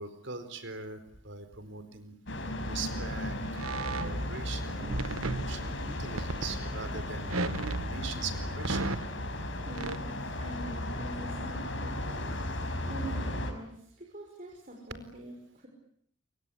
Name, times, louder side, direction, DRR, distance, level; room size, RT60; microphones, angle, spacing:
voice 1, 0.0-2.1 2.6-3.6 3.9-8.9 12.8-13.2, right 4 dB, 60° right, 11 dB, 4.4 m, -41 dB
sound 1, 2.3-13.5, left 1 dB, 60° left, 5.5 m, -35 dB
sound 2, 3.6-4.5 4.8-6.7 7.3-9.2 9.7-10.0, right 3 dB, 85° right, 1.2 m, -35 dB
voice 2, 9.6-12.5 12.9-15.7, right 1 dB, 40° right, 0 dB, 6.2 m, -44 dB
28.5 x 24.5 x 8.5 m, 0.67 s
head